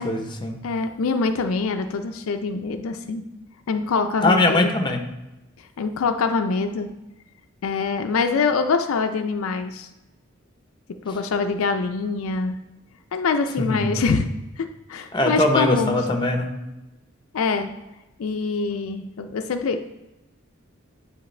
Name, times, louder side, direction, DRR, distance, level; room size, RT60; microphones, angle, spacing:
voice 1, 0.0-0.6 4.2-5.0 13.6-14.0 15.1-16.5, left 2 dB, 25° left, 4 dB, 0.7 m, -21 dB
voice 2, 0.6-3.2 3.7-4.7 5.8-6.9 7.6-9.9 11.0-12.6 13.1-14.3 14.6-16.0 17.3-17.7 18.2-19.8, left 4 dB, 75° left, 7 dB, 0.4 m, -24 dB
9.4 x 3.4 x 3.2 m, 0.98 s
head